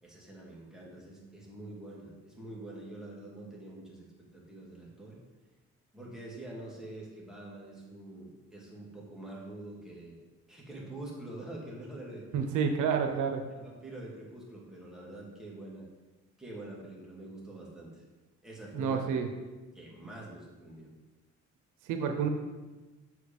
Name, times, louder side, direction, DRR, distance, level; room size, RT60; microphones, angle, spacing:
voice 1, 0.0-4.1 4.3-5.2 5.9-10.2 10.5-12.3 13.1-13.2 13.5-15.9 16.4-18.0 18.4-19.1 19.7-20.9, right 1 dB, ahead, -4 dB, 2.4 m, -45 dB
voice 2, 12.3-13.4 18.7-19.3 21.9-22.3, right 6 dB, 90° right, 5 dB, 0.8 m, -29 dB
6.7 x 4.9 x 5.4 m, 1.2 s
cardioid pair, 90°, 30 cm